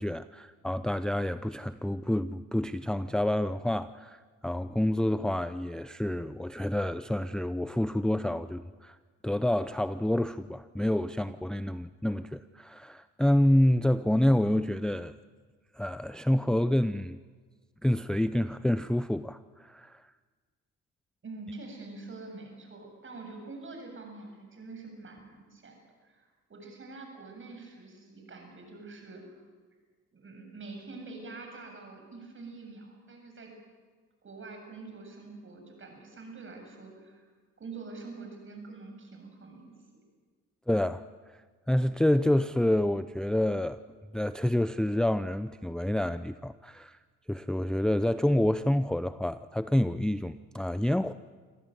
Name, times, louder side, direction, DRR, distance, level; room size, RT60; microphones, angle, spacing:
voice 1, 0.0-9.0 9.2-15.2 15.7-17.2 17.8-20.0 40.7-41.0 41.7-43.8 44.1-47.0 47.3-51.1, left 1 dB, ahead, 13 dB, 0.6 m, -28 dB
voice 2, 21.2-25.8 26.0-29.2 30.1-33.5 34.2-37.2 37.6-39.7, right 3 dB, 40° right, 3 dB, 7.8 m, -45 dB
26.5 x 16.0 x 9.3 m, 1.5 s
cardioid pair, 85°, 30 cm